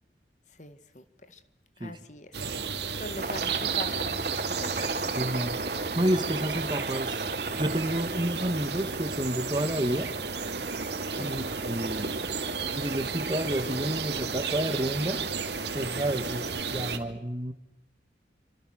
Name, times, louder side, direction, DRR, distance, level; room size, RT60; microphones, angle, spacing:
voice 1, 0.5-1.4 1.8-2.3 3.0-4.3 4.6-5.1 11.1-11.4 16.2-16.4, left 1 dB, 40° left, 1.9 m, -42 dB
sound 1, 2.3-17.0, right 5 dB, 70° right, 2.7 m, -33 dB
Aircraft, 3.2-16.6, right 2 dB, 50° right, 1.4 m, -37 dB
voice 2, 5.1-5.5 6.0-7.2 7.6-10.1 11.2-12.1 12.8-15.3 15.7-16.4 16.7-17.5, right 1 dB, 25° right, 1.8 m, -30 dB
28.5 x 26.0 x 6.6 m
head